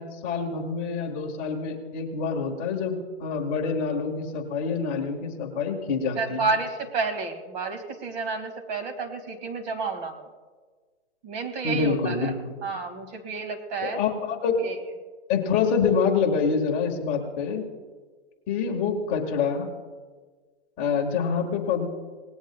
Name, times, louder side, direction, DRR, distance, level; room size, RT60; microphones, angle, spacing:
voice 1, 0.0-6.4 11.6-12.5 13.8-14.7 15.3-17.7 18.5-19.7 20.8-21.9, left 5 dB, 20° left, 1 dB, 1.5 m, -26 dB
voice 2, 6.2-10.3 11.2-12.4 12.6-14.0 14.6-14.8, right 4 dB, 35° right, 6 dB, 2.0 m, -30 dB
28.5 x 19.0 x 2.2 m, 1.4 s
hypercardioid pair, 155°, 35 cm